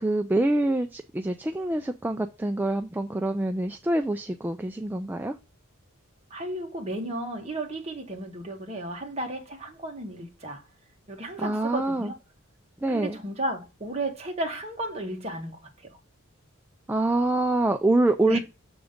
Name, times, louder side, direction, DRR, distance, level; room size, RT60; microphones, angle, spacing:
voice 1, 0.0-5.3 11.4-12.1 12.8-13.2 16.9-18.4, right 2 dB, 10° right, 0.3 m, -25 dB
voice 2, 6.3-10.6 11.1-12.1 12.9-16.0 18.2-18.4, right 1 dB, 30° right, 1.6 m, -33 dB
7.0 x 3.8 x 5.1 m
head